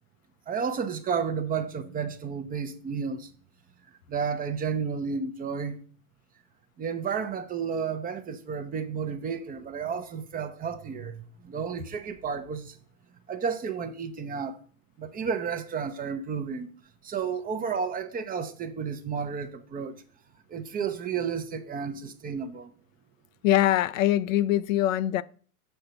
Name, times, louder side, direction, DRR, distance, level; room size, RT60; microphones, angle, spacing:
voice 1, 0.5-3.3 4.1-5.8 6.8-12.8 13.3-14.6 15.0-16.7 17.0-19.9 20.5-22.7, right 6 dB, 20° right, 0.7 m, -32 dB
voice 2, 23.4-25.2, left 13 dB, 60° left, 0.5 m, -23 dB
6.5 x 4.5 x 6.6 m
hypercardioid pair, 100°, 45 cm